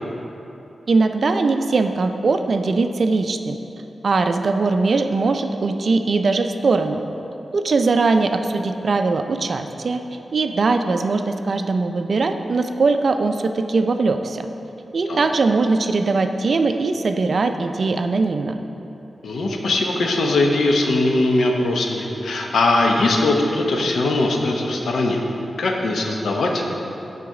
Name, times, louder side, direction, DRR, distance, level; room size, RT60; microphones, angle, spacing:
voice 1, 0.9-3.6 4.0-7.0 7.5-10.0 10.3-14.4 14.9-18.6, right 3 dB, 60° right, 7 dB, 0.4 m, -20 dB
voice 2, 19.2-25.2 25.6-26.7, left 2 dB, 80° left, 1 dB, 0.8 m, -20 dB
9.1 x 4.0 x 4.8 m, 3.0 s
cardioid pair, 75°, 0 cm